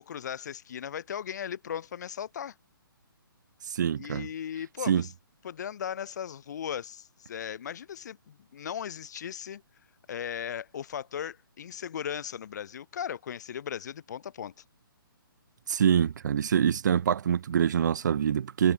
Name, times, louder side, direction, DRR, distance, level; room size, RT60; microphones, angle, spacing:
voice 1, 0.0-2.5 4.0-5.1 5.4-9.6 10.1-14.5, left 9 dB, 50° left, 1.0 m, -37 dB
voice 2, 3.6-4.3 4.9-5.0 15.7-18.7, right 8 dB, 50° right, 0.6 m, -25 dB
figure-of-eight pair, 135°, 12 cm